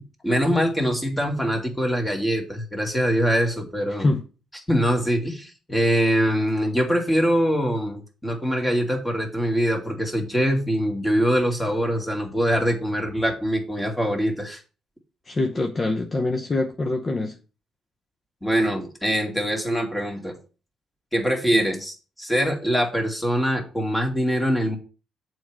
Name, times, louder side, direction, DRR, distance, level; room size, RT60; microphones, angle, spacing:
voice 1, 0.0-4.1 4.7-14.6 18.4-20.4 21.1-24.8, equal, 10° left, 2.2 m, -23 dB
voice 2, 15.2-17.4, left 2 dB, 30° left, 0.8 m, -24 dB
7.1 x 4.7 x 6.1 m
cardioid pair, 90°, 0 cm